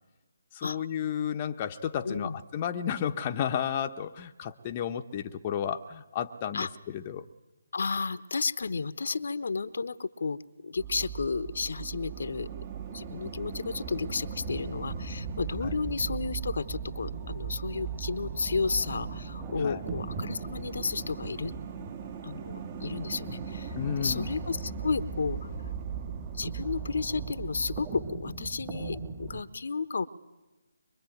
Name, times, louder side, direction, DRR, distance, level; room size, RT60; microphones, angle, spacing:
voice 1, 0.5-7.3 15.6-15.7 19.6-19.8 23.8-24.3, left 9 dB, 30° left, 6 dB, 1.0 m, -32 dB
voice 2, 2.0-2.4 6.5-6.7 7.7-12.5 12.9-21.5 22.2-25.7 26.3-30.0, left 4 dB, 60° left, 14 dB, 1.1 m, -32 dB
sound 1, 10.8-27.9, right 7 dB, 30° right, 1.7 m, -39 dB
sound 2, 14.5-29.4, right 3 dB, 15° right, 1.9 m, -42 dB
23.5 x 23.0 x 9.3 m, 1.1 s
figure-of-eight pair, 150°, 0 cm